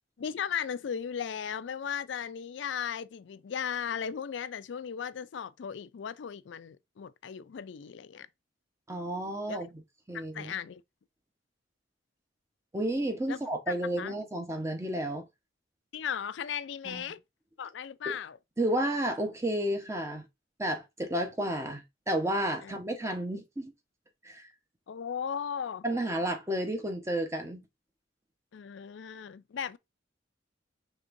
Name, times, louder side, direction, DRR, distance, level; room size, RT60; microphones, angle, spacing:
voice 1, 0.2-8.3 9.5-9.6 10.1-10.8 13.3-13.4 14.0-14.1 15.9-17.2 17.6-18.4 22.6-22.7 24.9-25.8 28.5-29.8, left 7 dB, 70° left, 0.4 m, -36 dB
voice 2, 8.9-9.7 10.1-10.5 12.7-15.3 16.8-17.0 18.1-18.2 18.6-20.3 20.6-23.7 24.2-24.5 25.8-27.6, right 1 dB, 15° right, 0.9 m, -31 dB
5.1 x 3.5 x 2.5 m
head